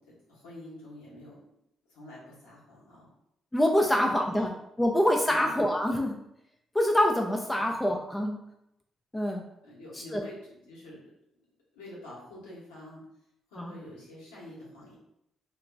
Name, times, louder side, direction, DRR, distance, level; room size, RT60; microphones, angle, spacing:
voice 1, 0.0-1.4 1.9-3.1 4.2-4.4 5.3-5.5 7.5-7.7 9.6-10.4 10.6-11.0 11.7-13.0 13.5-15.0, left 1 dB, 70° left, -7 dB, 1.1 m, -47 dB
voice 2, 3.5-4.5 4.8-6.2 6.7-8.4 9.1-9.4 10.1-10.2 13.6-13.7, left 1 dB, 15° left, 2 dB, 0.4 m, -25 dB
2.9 x 2.4 x 3.4 m, 0.79 s
figure-of-eight pair, 40°, 0 cm